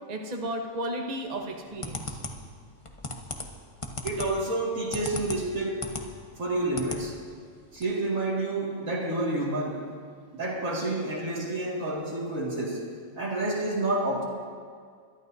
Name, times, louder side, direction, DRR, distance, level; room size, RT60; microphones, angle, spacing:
voice 1, 0.1-2.2, right 1 dB, 35° right, 2 dB, 1.0 m, -34 dB
sound 1, 1.4-6.1 6.4-7.0 7.4-7.5 7.7-7.8, left 2 dB, 25° left, 0.9 m, -36 dB
voice 2, 4.0-5.9 6.4-7.1 7.7-9.8 10.3-12.8 13.2-14.2, right 2 dB, 75° right, -3 dB, 2.5 m, -29 dB
22.5 x 12.0 x 2.7 m, 2.1 s
omnidirectional pair, 1.4 m